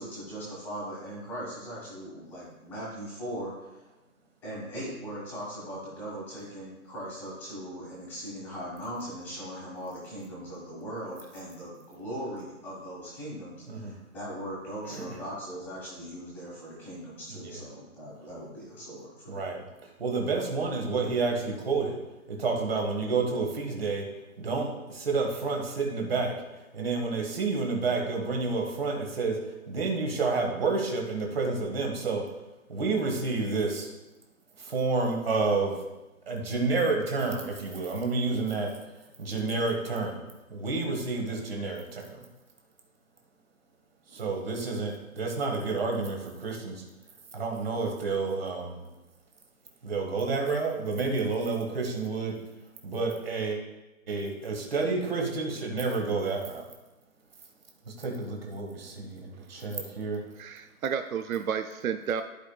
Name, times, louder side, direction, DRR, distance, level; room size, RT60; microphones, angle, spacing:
voice 1, 0.0-3.8 4.4-19.5, equal, 5° left, -8 dB, 1.4 m, -39 dB
voice 2, 13.6-14.0 14.9-15.2 17.3-17.6 19.3-19.7 20.0-22.0 22.3-24.1 24.4-26.4 26.7-29.4 29.7-32.3 32.7-33.9 34.6-35.8 36.3-38.7 39.2-40.2 40.5-42.3 44.1-46.8 47.3-48.9 49.8-52.4 52.8-53.6 54.1-56.6 57.9-60.2, right 4 dB, 40° right, 1 dB, 1.7 m, -29 dB
voice 3, 60.4-62.2, right 7 dB, 75° right, 8 dB, 0.6 m, -31 dB
14.5 x 5.1 x 2.3 m, 1.0 s
hypercardioid pair, 165°, 43 cm